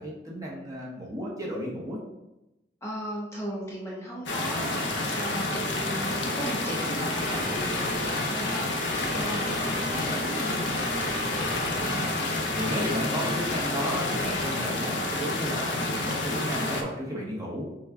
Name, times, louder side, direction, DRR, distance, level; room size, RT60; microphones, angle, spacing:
voice 1, 0.0-2.0 11.8-17.7, equal, 20° right, -4 dB, 1.0 m, -34 dB
voice 2, 2.8-10.8, equal, 15° left, -4 dB, 0.7 m, -37 dB
sound 1, 4.3-16.8, left 2 dB, 75° left, 0.6 m, -29 dB
sound 2, 7.2-14.6, left 2 dB, 50° left, 0.9 m, -36 dB
6.2 x 2.3 x 3.6 m, 0.95 s
head